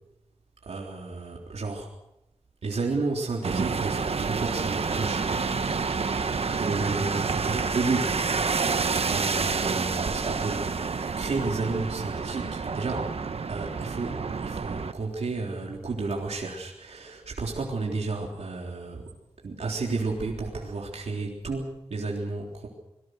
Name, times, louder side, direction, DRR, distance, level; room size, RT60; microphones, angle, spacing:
voice 1, 0.7-1.9 2.6-6.3 6.6-8.2 9.1-10.7 11.0-13.2 13.5-19.0 19.4-22.7, right 3 dB, 85° right, -1 dB, 3.7 m, -32 dB
sound 1, 3.4-14.9, right 5 dB, 70° right, 1.2 m, -28 dB
26.0 x 20.5 x 6.5 m, 0.86 s
wide cardioid pair, 95°, 11 cm